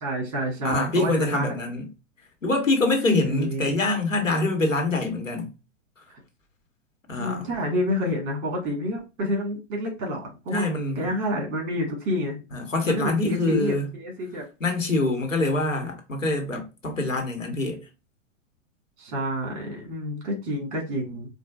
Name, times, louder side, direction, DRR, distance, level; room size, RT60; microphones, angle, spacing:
voice 1, 0.0-1.5 3.1-3.7 7.2-10.7 11.0-12.4 12.8-14.4 19.0-21.3, equal, 35° right, 1.8 m, -28 dB
voice 2, 0.6-1.9 2.4-5.5 6.0-6.1 7.1-7.5 10.5-11.1 12.5-13.9 14.6-17.9, left 2 dB, 85° left, 1.1 m, -25 dB
4.6 x 2.2 x 2.4 m
figure-of-eight pair, 105°, 38 cm